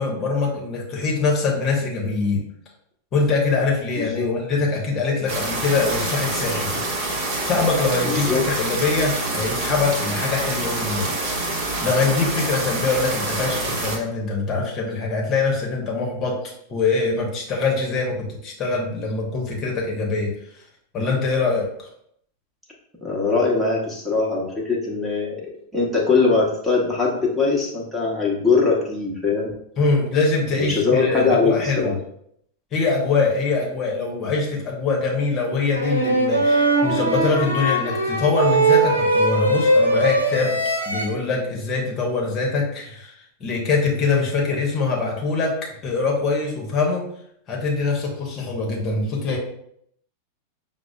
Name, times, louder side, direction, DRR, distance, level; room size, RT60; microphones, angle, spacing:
voice 1, 0.0-2.4 3.1-6.7 7.4-16.4 16.7-20.3 20.9-21.9 29.8-31.9 32.7-40.6 40.9-43.1 43.4-47.0 47.5-49.4, left 4 dB, 30° left, -1 dB, 0.9 m, -23 dB
voice 2, 4.0-4.3 8.0-8.5 23.0-25.4 25.7-29.5 30.6-31.9, left 4 dB, 5° right, -4 dB, 1.0 m, -21 dB
sound 1, 5.3-14.0, right 2 dB, 45° right, 0.8 m, -26 dB
sound 2, 35.7-41.1, right 2 dB, 90° left, 0.6 m, -20 dB
5.9 x 2.1 x 2.3 m, 0.71 s
figure-of-eight pair, 90°, 0 cm